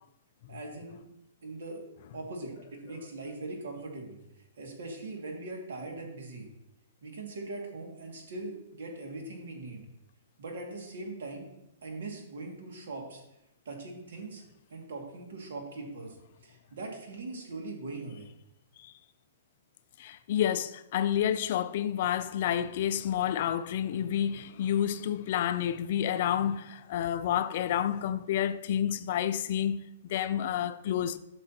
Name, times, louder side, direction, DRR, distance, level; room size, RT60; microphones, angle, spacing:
voice 1, 0.5-1.0 1.4-1.8 2.1-4.2 4.6-6.5 7.0-9.8 10.4-11.5 11.8-13.2 13.7-14.4 14.7-16.2 16.4-18.3, right 2 dB, 75° right, 2.1 m, -41 dB
voice 2, 20.0-31.2, left 10 dB, 40° left, 0.3 m, -29 dB
11.5 x 6.1 x 2.9 m
hypercardioid pair, 170°, 0 cm